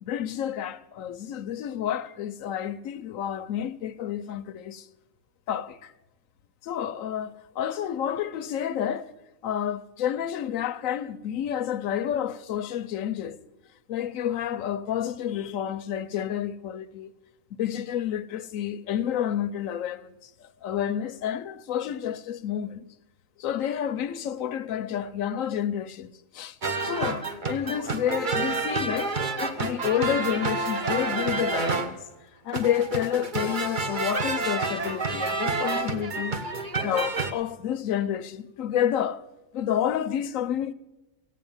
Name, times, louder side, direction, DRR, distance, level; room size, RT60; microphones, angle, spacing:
voice 1, 0.0-4.9 5.5-5.9 6.6-9.1 9.4-13.4 13.9-17.1 17.5-22.8 23.4-26.6 26.8-32.0 32.4-36.4 36.8-39.2 39.5-40.7, left 10 dB, 80° left, 1.1 m, -29 dB
sound 1, 26.6-31.9 32.5-37.3, right 3 dB, 40° right, 1.1 m, -29 dB
16.0 x 9.0 x 7.2 m
omnidirectional pair, 1.4 m